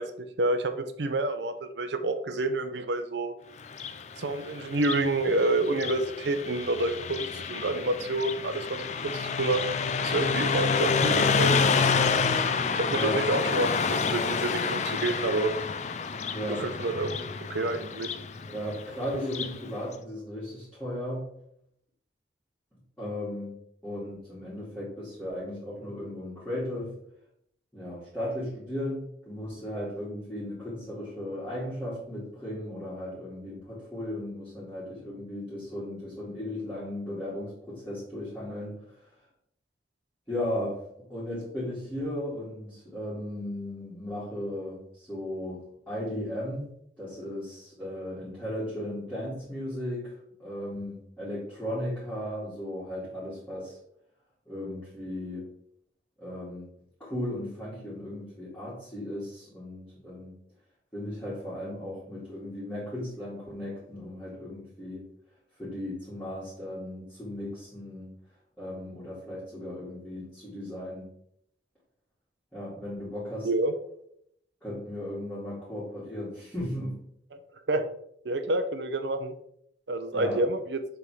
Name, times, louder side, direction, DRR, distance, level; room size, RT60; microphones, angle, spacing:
voice 1, 0.0-3.4 4.2-9.6 10.0-12.1 12.8-15.5 16.6-18.1 73.4-73.7 77.3-77.4 77.7-77.9 78.2-79.3 79.9-80.8, right 2 dB, 80° right, 9 dB, 0.7 m, -28 dB
Car passing by, 3.6-19.6, left 5 dB, 40° left, 0.4 m, -29 dB
voice 2, 12.9-13.2 16.3-16.7 18.5-21.3 23.0-23.5 23.8-27.0 27.7-39.1 40.3-46.7 47.0-53.8 54.5-55.5 56.2-56.7 57.0-60.3 60.9-65.0 65.6-68.1 68.6-71.1 72.5-73.5 74.6-77.0 80.1-80.4, left 1 dB, 10° left, -10 dB, 2.3 m, -36 dB
6.8 x 3.6 x 4.8 m, 0.71 s
head